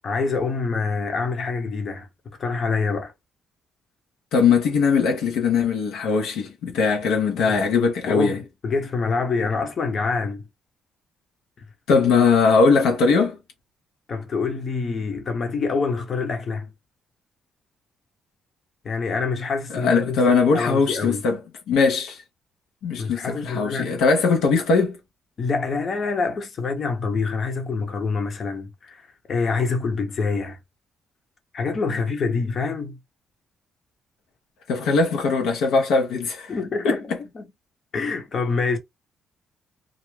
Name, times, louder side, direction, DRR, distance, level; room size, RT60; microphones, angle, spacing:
voice 1, 0.0-2.1 2.4-3.1 7.5-7.6 8.1-10.5 14.1-16.7 18.8-20.3 20.5-21.2 23.0-24.0 25.4-30.6 31.5-33.0 36.5-37.0 37.3-37.5 37.9-38.8, left 4 dB, 50° left, 0.7 m, -26 dB
voice 2, 4.3-8.4 11.9-13.4 19.7-21.4 21.7-22.2 22.8-25.0 34.7-36.5 36.8-37.2, left 4 dB, 90° left, 0.6 m, -20 dB
2.4 x 2.0 x 3.0 m
cardioid pair, 90°, 0 cm